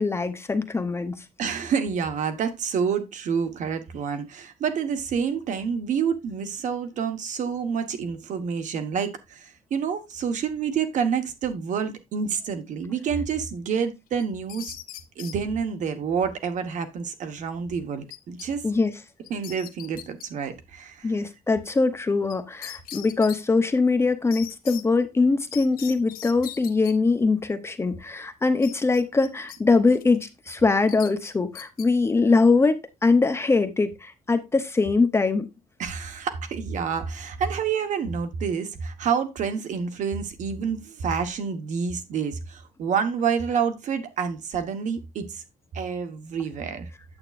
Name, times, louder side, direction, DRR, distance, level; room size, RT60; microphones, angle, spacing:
voice 1, 0.0-1.2 18.6-18.9 21.0-35.5, left 3 dB, 15° left, 0.7 m, -22 dB
voice 2, 1.4-14.8 15.2-18.6 19.3-21.1 35.8-45.4 45.7-46.9, right 6 dB, 55° right, 1.2 m, -28 dB
sound 1, 14.2-15.4 18.1-18.5 18.8-18.9 19.2-20.3 22.3-22.4 22.6-23.4 24.3-24.8 25.5-26.9 28.6-29.6 29.9-30.2 30.9-31.9, left 12 dB, 75° left, 0.9 m, -40 dB
8.9 x 7.9 x 2.4 m
cardioid pair, 155°, 15 cm